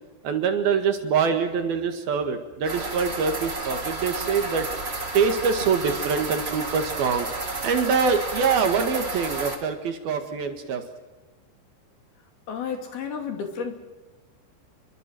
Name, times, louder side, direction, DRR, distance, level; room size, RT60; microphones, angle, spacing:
voice 1, 0.2-4.7 5.1-10.8, right 5 dB, 60° right, 6 dB, 3.3 m, -24 dB
sound 1, 2.6-9.6, right 3 dB, 20° right, 2.1 m, -31 dB
voice 2, 12.5-13.8, left 6 dB, 60° left, 5 dB, 4.4 m, -32 dB
28.5 x 23.0 x 7.7 m, 1.2 s
omnidirectional pair, 5.3 m